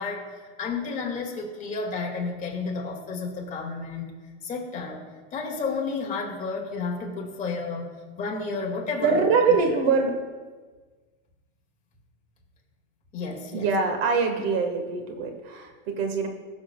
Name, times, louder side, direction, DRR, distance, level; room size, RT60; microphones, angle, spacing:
voice 1, 0.0-4.1 4.4-5.0 5.3-7.9 8.2-9.3 13.1-13.7, left 4 dB, 25° left, -1 dB, 1.9 m, -31 dB
voice 2, 9.0-10.1 13.5-16.3, right 5 dB, 60° right, 5 dB, 1.5 m, -23 dB
19.5 x 7.0 x 2.2 m, 1.4 s
supercardioid pair, 145°, 34 cm